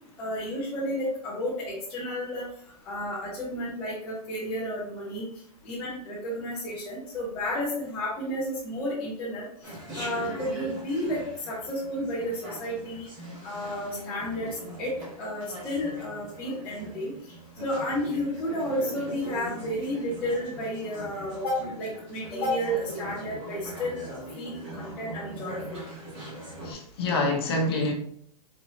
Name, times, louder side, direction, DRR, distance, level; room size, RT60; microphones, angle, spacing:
voice 1, 0.2-2.4 2.9-5.2 5.6-9.5 9.9-13.1 13.4-14.5 14.8-17.1 17.6-24.1 24.3-25.8, left 1 dB, 5° left, -8 dB, 0.4 m, -32 dB
Chatter, 9.6-26.7, right 1 dB, 20° right, 1.4 m, -41 dB
voice 2, 26.6-27.9, left 2 dB, 40° left, 1 dB, 0.8 m, -26 dB
4.1 x 3.1 x 2.6 m, 0.65 s
supercardioid pair, 180°, 20 cm